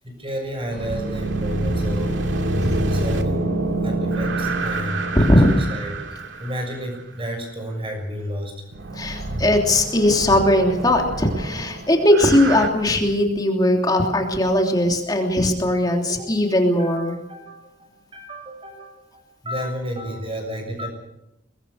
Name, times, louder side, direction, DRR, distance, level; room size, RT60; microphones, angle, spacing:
voice 1, 0.0-2.2 2.9-6.0 6.4-8.5 16.1-16.3 16.8-20.9, equal, 30° right, 4 dB, 6.6 m, -32 dB
sound 1, 0.7-6.8 8.7-12.7, right 2 dB, 85° right, 2.2 m, -26 dB
voice 2, 5.1-5.5 9.0-17.2, left 1 dB, 20° left, 2 dB, 3.2 m, -19 dB
23.5 x 21.0 x 6.6 m, 0.86 s
head